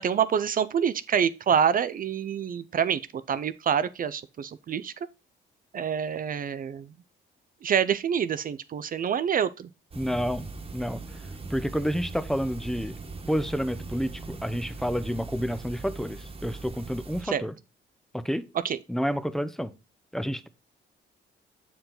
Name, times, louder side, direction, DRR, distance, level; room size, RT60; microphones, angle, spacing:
voice 1, 0.0-3.0 3.3-4.9 5.7-6.9 7.6-9.7 17.2-17.4 18.6-18.8, right 8 dB, 45° right, 0.5 m, -26 dB
sound 1, 9.9-17.2, right 3 dB, 30° right, 1.3 m, -40 dB
voice 2, 10.0-10.5 10.7-11.0 11.5-12.9 13.3-17.5 18.1-18.5 18.9-19.7 20.1-20.5, equal, ahead, 0.6 m, -29 dB
7.4 x 4.6 x 3.8 m
cardioid pair, 90°, 20 cm